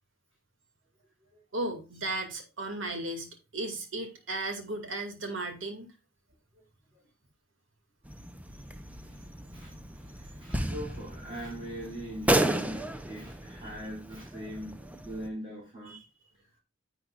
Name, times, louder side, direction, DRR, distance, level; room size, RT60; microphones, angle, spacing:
voice 1, 1.5-5.9 15.9-16.0, right 2 dB, 70° right, 5 dB, 2.2 m, -35 dB
sound 1, 8.0-15.3, right 1 dB, 5° right, 0.6 m, -33 dB
voice 2, 9.1-16.0, equal, 30° right, -5 dB, 3.3 m, -41 dB
10.0 x 8.1 x 2.5 m, 0.29 s
head